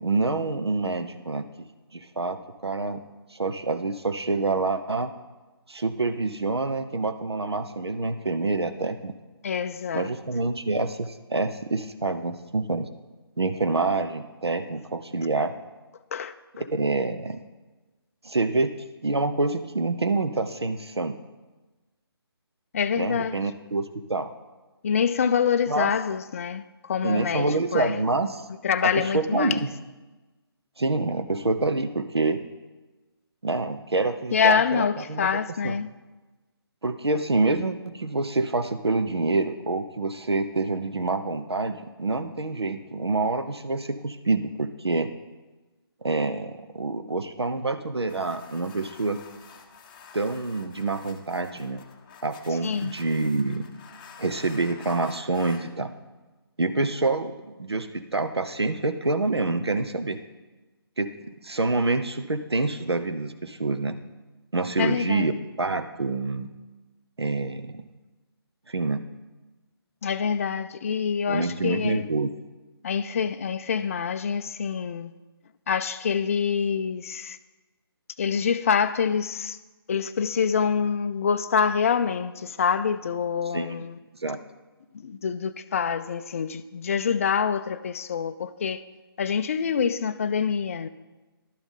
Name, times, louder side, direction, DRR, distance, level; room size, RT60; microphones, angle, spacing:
voice 1, 0.0-1.5 1.9-3.0 3.3-5.1 5.7-9.1 9.9-12.9 13.4-15.5 16.7-17.4 18.2-18.7 19.0-21.2 23.0-24.3 25.7-25.9 27.0-28.4 28.8-29.7 30.8-32.4 33.4-35.4 35.6-35.7 36.8-45.1 46.0-49.2 50.1-51.9 52.2-53.7 54.2-55.9 56.6-60.2 61.0-61.1 61.4-64.0 64.5-65.3 65.6-66.5 67.2-67.8 68.7-69.0 71.3-72.3 83.5-83.8 84.2-84.4, right 3 dB, 85° right, 0.8 m, -27 dB
voice 2, 9.4-10.1 16.1-16.6 22.7-23.4 24.8-28.0 28.6-29.6 34.3-35.9 52.6-52.9 64.8-65.4 70.0-72.1 72.8-75.1 75.7-77.4 78.2-79.6 79.9-84.0 84.9-88.8 89.2-90.9, left 6 dB, 35° left, 0.4 m, -26 dB
sound 1, 48.1-55.7, left 6 dB, 20° left, 0.8 m, -49 dB
12.0 x 7.0 x 5.5 m
figure-of-eight pair, 150°, 13 cm